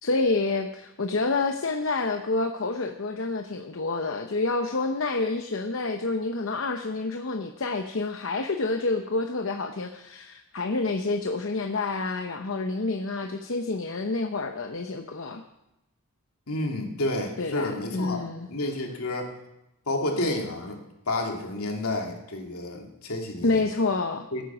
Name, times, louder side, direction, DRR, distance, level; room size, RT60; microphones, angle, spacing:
voice 1, 0.0-15.4 17.4-18.5 23.4-24.3, left 3 dB, 60° left, 5 dB, 0.8 m, -28 dB
voice 2, 16.5-18.2 18.5-19.3 19.9-20.8 21.1-23.6 24.3-24.4, left 1 dB, 80° left, 1 dB, 2.5 m, -30 dB
16.5 x 9.2 x 6.1 m, 0.93 s
head